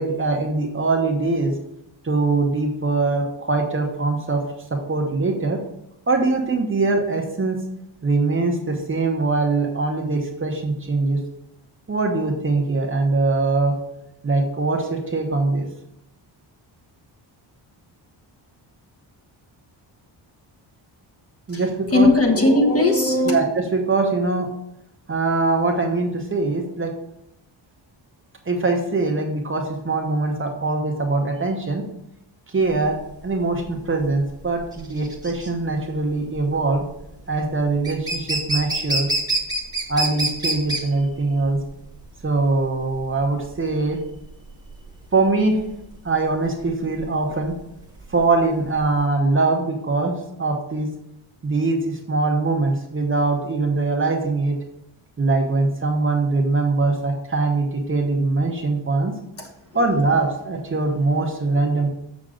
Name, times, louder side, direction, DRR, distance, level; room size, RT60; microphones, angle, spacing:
voice 1, 0.0-1.5 2.0-4.4 4.7-5.6 6.1-7.6 8.0-11.2 11.9-13.8 14.2-15.7 21.5-22.1 23.3-24.5 25.1-26.9 28.5-31.8 32.5-33.0 33.2-36.9 37.3-39.1 39.9-41.6 42.2-44.0 45.1-45.6 46.0-47.5 48.1-50.9 51.4-54.6 55.2-59.1 59.7-61.9, right 3 dB, 25° right, 1 dB, 0.9 m, -22 dB
voice 2, 21.9-23.4 59.4-59.8, left 2 dB, 30° left, 3 dB, 1.2 m, -18 dB
sound 1, 32.7-49.0, right 2 dB, 10° right, 1.4 m, -28 dB
7.2 x 6.4 x 3.8 m, 0.84 s
wide cardioid pair, 175°, 47 cm